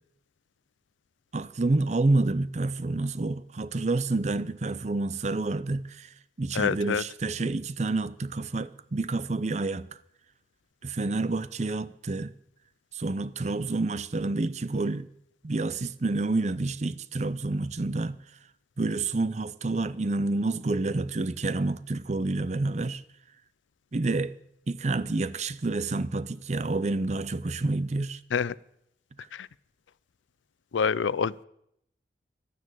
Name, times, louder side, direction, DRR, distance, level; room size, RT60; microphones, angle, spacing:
voice 1, 1.3-6.1 6.4-9.9 10.8-12.3 12.9-15.1 15.4-18.2 18.8-23.0 23.9-24.3 24.7-28.2, right 2 dB, 35° right, 0.5 m, -28 dB
voice 2, 6.5-7.0 28.3-28.6 29.3-29.5 30.7-31.4, left 6 dB, 85° left, 0.4 m, -27 dB
12.5 x 9.5 x 8.9 m
head